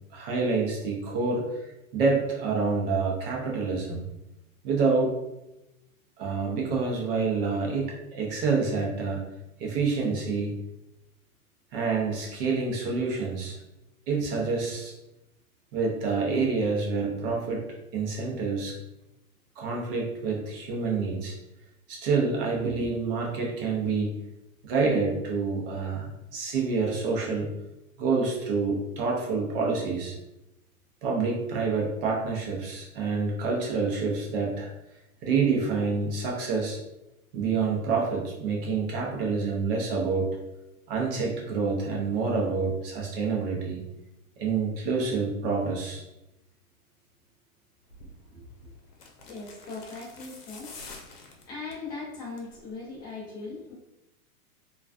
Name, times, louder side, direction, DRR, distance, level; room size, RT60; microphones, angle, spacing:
voice 1, 0.1-1.6 1.9-4.1 4.6-5.2 6.2-9.3 9.6-10.6 11.7-13.6 14.1-15.0 15.7-17.6 17.9-18.8 19.6-21.4 21.9-24.1 24.6-27.5 28.0-30.2 31.0-34.7 35.2-36.8 37.3-40.4 40.9-43.8 44.4-46.0, right 4 dB, 40° right, -1 dB, 0.6 m, -27 dB
sound 1, 47.9-48.2 48.9-51.9 52.2-52.6 52.9-53.0, left 3 dB, 85° left, 0.7 m, -46 dB
voice 2, 49.2-53.7, left 3 dB, 10° left, -7 dB, 0.4 m, -40 dB
2.3 x 2.2 x 2.3 m, 0.90 s
hypercardioid pair, 135°, 45 cm